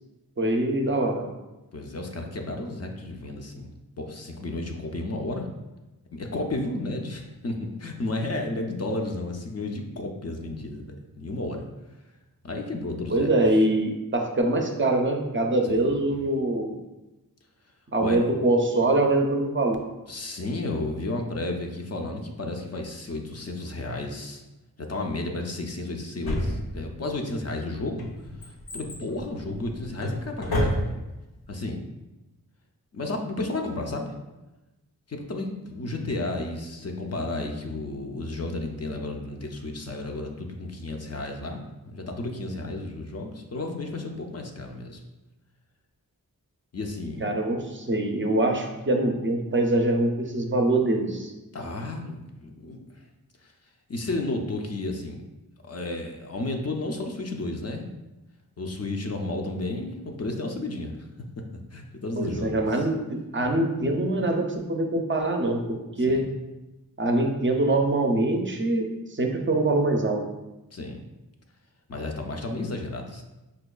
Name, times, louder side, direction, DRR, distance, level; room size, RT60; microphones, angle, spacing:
voice 1, 0.4-1.3 13.1-16.7 17.9-19.8 47.2-51.3 62.2-66.2 67.0-70.2, right 2 dB, 35° right, 3 dB, 0.4 m, -24 dB
voice 2, 1.7-3.7 4.0-5.5 6.1-11.7 12.4-13.3 15.6-16.1 18.0-18.2 20.1-24.4 24.8-28.1 28.4-30.8 31.5-31.8 32.9-34.1 35.1-45.0 46.7-47.3 51.5-53.0 53.4-53.5 53.9-55.2 55.6-57.9 58.6-60.9 61.7-62.9 66.1-66.2 70.7-71.1 71.9-73.2, left 2 dB, 45° left, 2 dB, 0.4 m, -32 dB
Drawer open or close, 26.3-27.1 27.7-31.2 31.5-31.6, equal, 80° left, 0.7 m, -29 dB
5.1 x 2.2 x 2.2 m, 1.0 s
wide cardioid pair, 60°, 36 cm